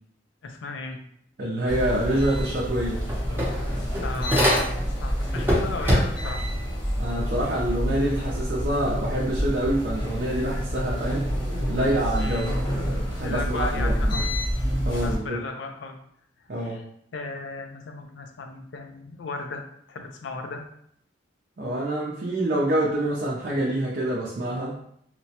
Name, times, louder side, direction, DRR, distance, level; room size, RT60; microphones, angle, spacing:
voice 1, 0.4-1.0 4.0-6.5 12.2-12.5 13.2-14.3 14.9-16.0 16.6-16.8 17.1-20.6, left 3 dB, 75° left, 4 dB, 0.4 m, -35 dB
voice 2, 1.4-3.0 7.0-11.3 11.7-12.5 12.8-14.2 14.8-15.4 16.5-16.8 21.6-24.8, right 1 dB, 50° right, -5 dB, 0.5 m, -26 dB
sound 1, 1.7-15.2, equal, 25° left, 0.6 m, -28 dB
sound 2, 2.4-2.5 2.7-5.0 5.3-6.4, equal, 10° right, 0.7 m, -24 dB
2.9 x 2.1 x 2.8 m, 0.70 s
head